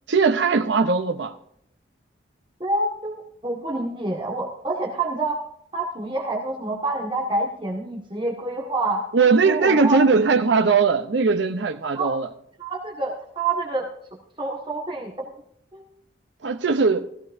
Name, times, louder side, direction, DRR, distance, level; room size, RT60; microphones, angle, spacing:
voice 1, 0.1-1.3 9.1-12.3 16.4-17.1, right 4 dB, 75° right, 0.7 m, -19 dB
voice 2, 2.6-5.4 5.7-9.0 9.4-10.0 11.9-12.1 12.6-13.9 14.4-15.1 15.7-15.9, right 2 dB, 25° right, 1.6 m, -27 dB
16.0 x 15.0 x 2.6 m
head